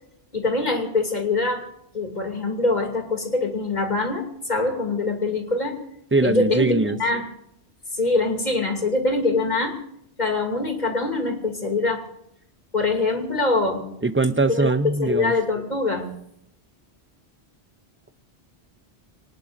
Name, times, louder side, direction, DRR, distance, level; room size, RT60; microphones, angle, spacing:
voice 1, 0.3-1.7 1.9-5.8 6.2-6.7 7.0-7.3 7.9-9.7 10.2-12.1 12.7-13.9 14.5-14.7 15.0-16.1, left 3 dB, 40° left, 2 dB, 2.9 m, -23 dB
voice 2, 6.1-7.0 14.0-15.4, right 3 dB, 20° right, 11 dB, 0.4 m, -21 dB
25.0 x 19.5 x 2.6 m, 0.76 s
omnidirectional pair, 1.1 m